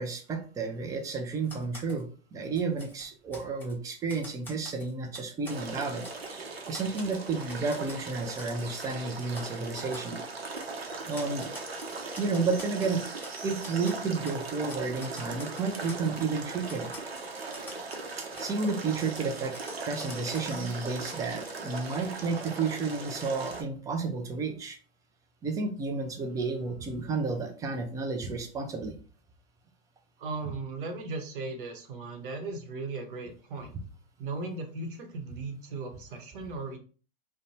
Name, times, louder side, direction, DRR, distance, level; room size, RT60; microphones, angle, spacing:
voice 1, 0.0-6.0 6.7-10.2 11.1-11.5 12.2-13.0 13.4-16.9 18.4-19.6 19.8-24.8 25.4-29.0, right 4 dB, 10° right, 4 dB, 0.3 m, -31 dB
Typewriter, 1.4-2.0 2.4-3.7 4.1-5.6 6.0-6.4 6.7-8.0 8.4-8.5 8.8-9.0 9.3-9.5 9.7-10.1 10.6-10.7 11.1-13.4 13.6-14.4 14.7-16.3 16.7-18.1 18.3-18.5 19.0-20.6 21.0-21.1, left 1 dB, 5° left, 1.0 m, -47 dB
sound 1, 5.5-23.6, right 3 dB, 85° right, 0.7 m, -39 dB
voice 2, 30.2-33.8 34.2-36.8, right 3 dB, 60° right, 5 dB, 0.8 m, -37 dB
2.6 x 2.1 x 2.9 m, 0.39 s
hypercardioid pair, 105°, 29 cm